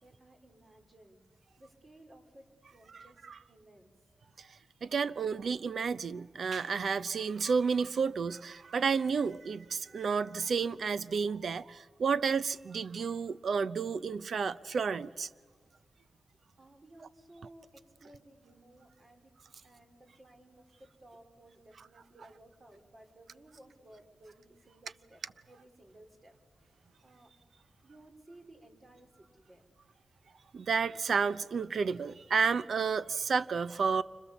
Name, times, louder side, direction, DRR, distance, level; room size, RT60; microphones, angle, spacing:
voice 1, 0.0-1.2 1.6-3.9 16.6-19.3 19.6-25.2 25.5-26.3 27.0-27.3 27.8-29.6, right 1 dB, 40° right, 4.2 m, -58 dB
voice 2, 2.9-3.3 4.4-15.3 30.5-34.0, right 5 dB, 70° right, 0.7 m, -31 dB
29.5 x 26.0 x 7.2 m
wide cardioid pair, 95°, 0 cm